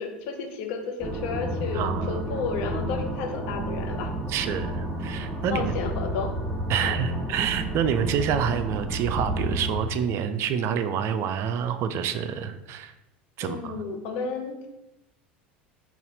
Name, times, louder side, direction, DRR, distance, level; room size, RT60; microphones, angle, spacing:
voice 1, 0.0-4.1 4.4-4.6 5.5-6.3 6.8-6.9 13.4-14.7, left 5 dB, 60° left, 3 dB, 0.7 m, -32 dB
sound 1, 1.0-9.9, right 1 dB, 15° right, 0.7 m, -31 dB
voice 2, 1.7-2.2 4.3-5.8 6.7-12.9 13.4-13.8, right 8 dB, 50° right, 10 dB, 0.3 m, -27 dB
4.1 x 2.4 x 3.9 m, 0.93 s
hypercardioid pair, 75°, 6 cm